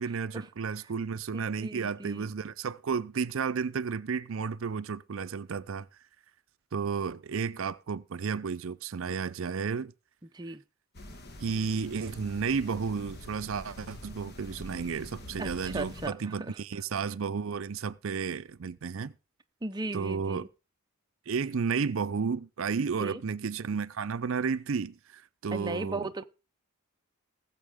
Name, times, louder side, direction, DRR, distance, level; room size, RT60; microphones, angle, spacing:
voice 1, 0.0-5.9 6.7-9.9 10.5-10.6 11.4-19.1 19.9-20.5 21.3-26.1, right 5 dB, 65° right, 0.5 m, -32 dB
voice 2, 1.3-2.3 10.3-10.6 15.4-16.6 19.6-20.5 22.9-23.2 25.5-26.3, right 2 dB, 20° right, 0.6 m, -37 dB
sound 1, 10.9-16.1, left 1 dB, 50° left, 1.3 m, -45 dB
19.5 x 7.4 x 3.6 m
head